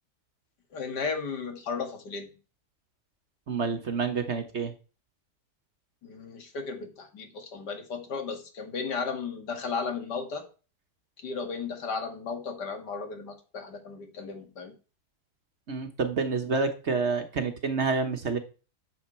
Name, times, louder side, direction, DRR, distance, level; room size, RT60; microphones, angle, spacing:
voice 1, 0.7-2.3 6.0-10.4 11.2-14.7, left 5 dB, 80° left, 5 dB, 2.4 m, -35 dB
voice 2, 3.5-4.7 15.7-18.4, right 4 dB, 45° right, 7 dB, 1.3 m, -28 dB
10.5 x 7.1 x 4.4 m, 0.34 s
omnidirectional pair, 1.8 m